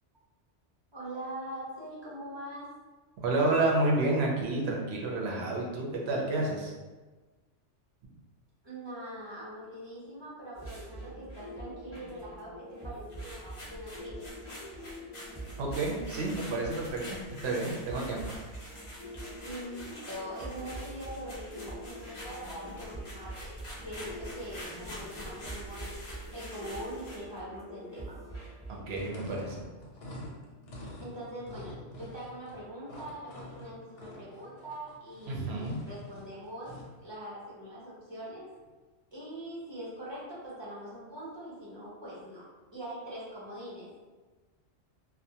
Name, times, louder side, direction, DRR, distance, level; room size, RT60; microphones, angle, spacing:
voice 1, 0.9-2.7 8.6-14.3 19.4-25.9 26.3-28.2 31.0-36.7 37.0-38.5 39.1-42.4 42.7-43.9, right 1 dB, 30° right, -8 dB, 0.5 m, -42 dB
voice 2, 3.2-6.7 15.6-17.0 17.4-18.3 28.9-29.6 35.3-35.8, right 2 dB, 70° right, -2 dB, 0.8 m, -30 dB
sound 1, 10.5-29.1, right 1 dB, 10° right, 0.9 m, -45 dB
sound 2, 13.1-27.3, left 1 dB, 40° left, 0.5 m, -46 dB
sound 3, 28.9-37.0, left 1 dB, 85° left, 0.9 m, -47 dB
2.2 x 2.1 x 2.7 m, 1.3 s
omnidirectional pair, 1.2 m